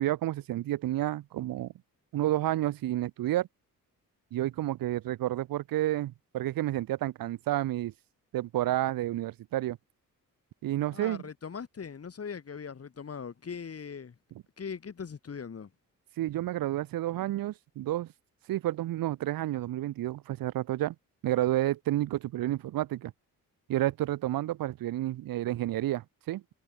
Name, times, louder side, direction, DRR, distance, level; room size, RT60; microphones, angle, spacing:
voice 1, 0.0-1.7 2.1-3.5 4.3-7.9 8.3-9.8 10.6-11.2 16.2-18.1 18.5-20.9 21.2-23.1 23.7-26.4, right 14 dB, 75° right, 0.7 m, -30 dB
voice 2, 10.9-14.2 14.6-15.7, left 6 dB, 45° left, 7.3 m, -40 dB
cardioid pair, 125°, 35 cm